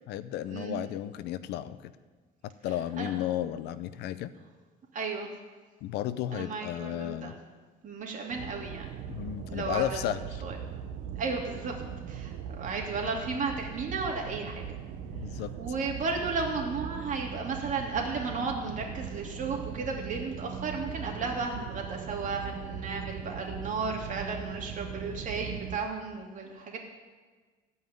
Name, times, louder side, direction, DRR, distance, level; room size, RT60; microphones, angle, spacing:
voice 1, 0.1-1.9 2.6-4.3 5.8-7.3 9.1-10.2 15.1-15.5, left 12 dB, 85° left, 14 dB, 0.6 m, -33 dB
voice 2, 4.9-5.3 6.3-7.3 7.8-8.9 9.5-10.0 10.4-10.6 11.2-11.7 12.1-14.6 15.6-26.8, right 4 dB, 50° right, 0 dB, 2.8 m, -34 dB
sound 1, 8.3-25.8, right 8 dB, 85° right, 0.9 m, -40 dB
16.0 x 5.4 x 9.5 m, 1.4 s
cardioid pair, 110°, 17 cm